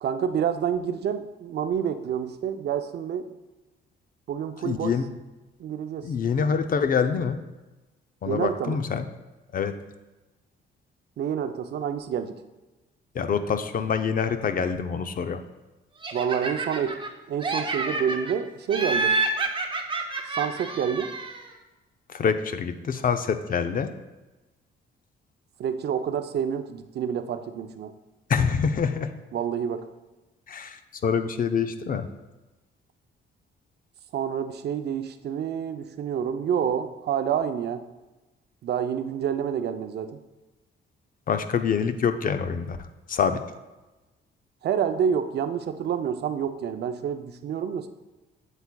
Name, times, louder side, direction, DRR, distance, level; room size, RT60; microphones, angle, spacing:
voice 1, 0.0-3.2 4.3-4.9 5.6-6.1 8.3-8.8 11.2-12.3 16.1-17.0 17.3-19.2 20.3-21.1 25.6-27.9 29.3-29.9 34.1-37.8 38.6-40.2 44.6-47.9, right 8 dB, 55° right, 9 dB, 0.5 m, -28 dB
voice 2, 4.6-5.1 6.0-7.4 8.2-9.1 9.5-9.7 13.1-15.4 22.1-23.9 28.3-29.1 30.5-32.1 41.3-42.8 43.1-43.4, left 6 dB, 45° left, 9 dB, 0.5 m, -25 dB
Laughter, 16.0-17.1 17.4-18.3 18.7-21.5, right 3 dB, 25° right, 0.8 m, -28 dB
8.0 x 7.2 x 2.3 m, 1.1 s
cardioid pair, 90°, 20 cm